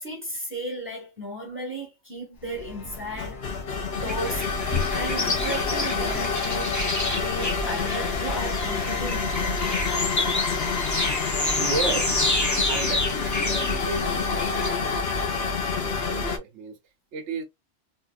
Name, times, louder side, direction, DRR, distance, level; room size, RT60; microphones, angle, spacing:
voice 1, 0.0-3.7 4.0-4.5 4.9-6.8 7.1-9.6, equal, 10° right, 1.4 m, -34 dB
sound 1, 2.4-16.4, left 5 dB, 55° left, 1.0 m, -28 dB
sound 2, 4.1-14.7, left 2 dB, 20° left, 0.5 m, -29 dB
voice 2, 11.5-15.0 15.3-16.8 17.1-17.4, right 4 dB, 65° right, 1.0 m, -35 dB
3.8 x 2.5 x 2.3 m
omnidirectional pair, 1.3 m